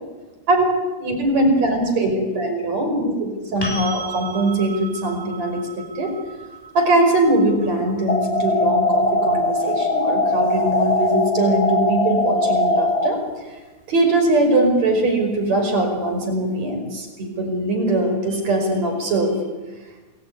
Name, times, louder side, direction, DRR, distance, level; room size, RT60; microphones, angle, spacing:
voice 1, 1.0-6.1 6.7-13.2 13.5-13.6 13.9-19.4, right 2 dB, 60° right, 4 dB, 6.6 m, -21 dB
sound 1, 3.6-11.4 14.2-14.3, right 3 dB, 5° left, 6.8 m, -37 dB
sound 2, 8.1-13.1, left 2 dB, 40° left, 1.0 m, -20 dB
28.5 x 20.5 x 9.8 m, 1.2 s
omnidirectional pair, 3.5 m